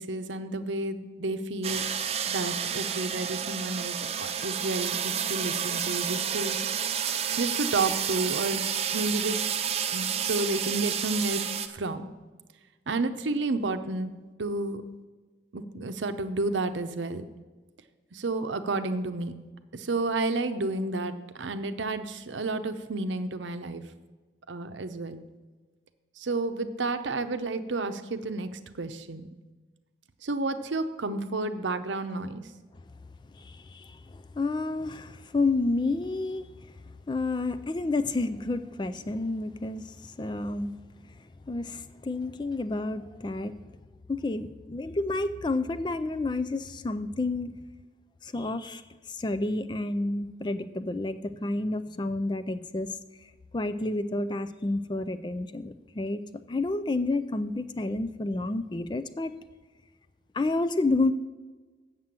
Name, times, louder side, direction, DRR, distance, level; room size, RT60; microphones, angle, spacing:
voice 1, 0.0-1.8 2.2-6.6 7.4-9.4 9.9-11.4 11.7-12.1 12.9-14.1 14.4-14.8 15.5-17.2 18.1-19.3 19.7-23.8 24.5-25.2 26.2-29.3 30.2-32.4, right 2 dB, 80° right, 9 dB, 0.7 m, -31 dB
sound 1, 1.6-11.7, right 8 dB, 35° right, 0.5 m, -30 dB
voice 2, 33.4-36.5 37.1-40.8 41.5-43.5 44.1-47.5 48.2-48.8 49.1-52.9 53.5-56.2 56.5-59.3 60.3-61.1, left 2 dB, 25° left, 12 dB, 0.3 m, -30 dB
7.7 x 7.4 x 7.3 m, 1.3 s
head